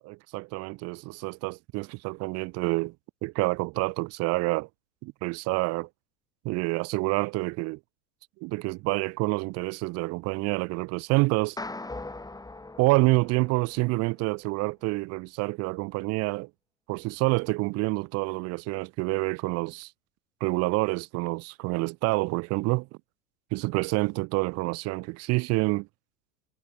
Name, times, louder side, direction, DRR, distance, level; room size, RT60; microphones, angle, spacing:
voice 1, 0.1-2.9 3.2-4.7 5.0-5.9 6.4-7.8 8.4-11.6 12.8-16.5 16.9-19.9 20.4-22.9 23.5-25.9, right 24 dB, 35° right, 0.4 m, -27 dB
sound 1, 11.6-14.0, left 2 dB, 10° left, 2.1 m, -40 dB
hypercardioid pair, 85°, 47 cm